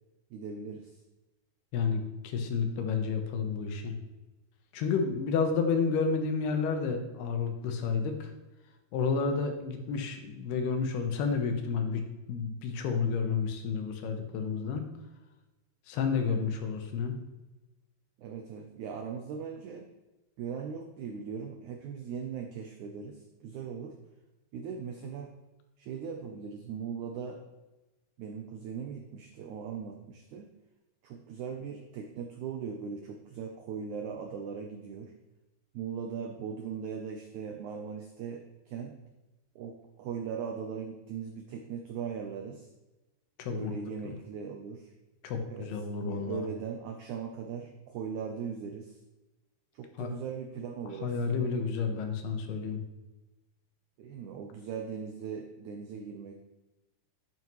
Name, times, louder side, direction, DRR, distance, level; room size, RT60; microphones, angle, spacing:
voice 1, 0.3-1.0 18.2-19.9 20.4-24.0 24.5-25.3 25.8-27.4 28.2-30.5 31.0-35.1 35.7-39.0 39.5-42.7 43.5-44.9 45.5-45.7 46.0-49.0 49.7-51.5 54.0-56.4, right 6 dB, 85° right, 4 dB, 1.7 m, -39 dB
voice 2, 1.7-3.9 4.7-8.3 8.9-14.8 15.9-17.2 43.4-43.7 44.0-44.1 45.2-46.5 50.0-50.1 51.0-52.8, left 5 dB, 85° left, 4 dB, 3.2 m, -30 dB
11.0 x 9.2 x 3.1 m, 1.1 s
omnidirectional pair, 4.5 m